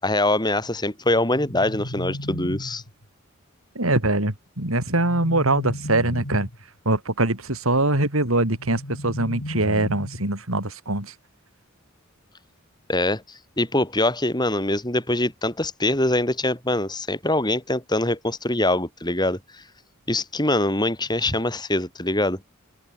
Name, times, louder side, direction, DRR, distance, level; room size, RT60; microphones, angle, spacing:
voice 1, 0.0-2.8 12.9-19.4 20.1-22.4, left 1 dB, 20° left, 5.8 m, -23 dB
sound 1, 1.1-3.1 4.7-6.6 8.4-10.4, left 1 dB, 75° left, 4.6 m, -35 dB
voice 2, 3.7-6.5 6.8-11.1, right 2 dB, 80° right, 5.1 m, -23 dB
open air
head